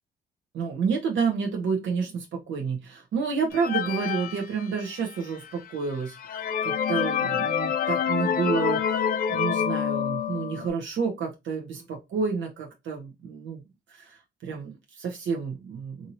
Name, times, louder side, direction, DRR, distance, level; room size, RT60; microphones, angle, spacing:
voice 1, 0.5-13.6 13.9-16.1, right 5 dB, 70° right, 0.9 m, -30 dB
sound 1, 3.5-5.2 5.7-5.8 6.2-10.7, left 8 dB, 45° left, 0.4 m, -27 dB
2.7 x 2.6 x 2.9 m
cardioid pair, 90°, 20 cm